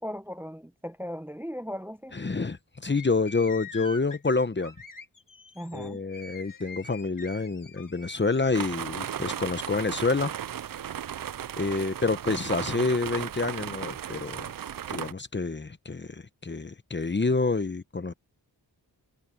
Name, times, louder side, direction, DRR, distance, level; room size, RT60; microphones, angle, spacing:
voice 1, 0.0-2.2 5.5-6.0, equal, 5° right, 0.8 m, -37 dB
voice 2, 2.1-4.7 5.7-10.3 11.6-14.5 14.9-18.1, left 3 dB, 30° left, 0.9 m, -28 dB
sound 1, 2.9-8.6, left 4 dB, 50° left, 2.5 m, -45 dB
sound 2, 8.5-15.1, right 9 dB, 60° right, 0.6 m, -35 dB
wide cardioid pair, 80°, 40 cm